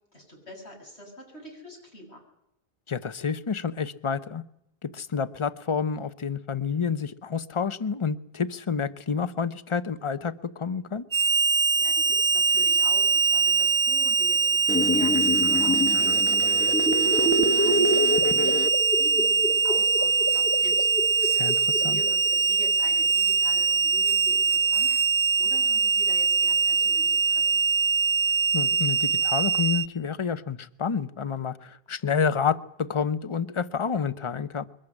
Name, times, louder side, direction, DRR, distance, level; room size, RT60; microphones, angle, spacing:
voice 1, 0.1-2.2 11.7-21.4 21.8-24.9 25.4-27.6, left 1 dB, 85° left, 0 dB, 8.2 m, -45 dB
voice 2, 2.9-4.4 4.8-11.0 21.2-22.0 28.5-34.6, left 6 dB, 30° left, 14 dB, 0.9 m, -29 dB
Harmonica, 11.1-29.9, right 4 dB, 20° right, 1.0 m, -23 dB
sound 1, 14.7-18.7, left 1 dB, 10° left, 1.1 m, -26 dB
sound 2, 15.9-22.6, left 1 dB, 65° left, 2.3 m, -34 dB
23.0 x 14.5 x 9.9 m, 0.80 s
omnidirectional pair, 1.1 m